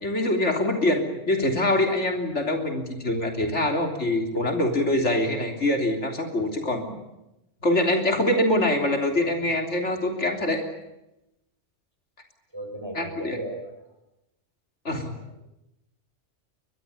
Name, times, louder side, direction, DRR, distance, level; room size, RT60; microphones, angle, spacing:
voice 1, 0.0-6.9 7.6-10.6 13.0-13.4 14.9-15.1, left 1 dB, 80° left, 4 dB, 3.7 m, -24 dB
voice 2, 12.5-13.7, right 1 dB, 20° right, 3 dB, 7.2 m, -35 dB
24.5 x 21.0 x 8.6 m, 0.90 s
omnidirectional pair, 1.2 m